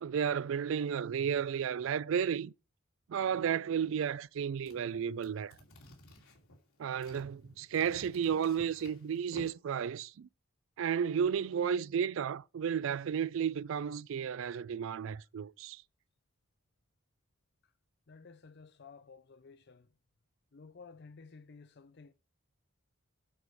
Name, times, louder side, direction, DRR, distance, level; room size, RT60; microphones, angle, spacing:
voice 1, 0.0-2.5 3.1-5.5 6.8-10.3 10.8-15.8, right 7 dB, 65° right, 0.3 m, -33 dB
sound 1, 4.5-9.5, left 1 dB, 80° left, 2.7 m, -55 dB
voice 2, 18.1-19.9 20.5-22.1, left 4 dB, 50° left, 0.5 m, -54 dB
9.0 x 4.8 x 4.8 m
head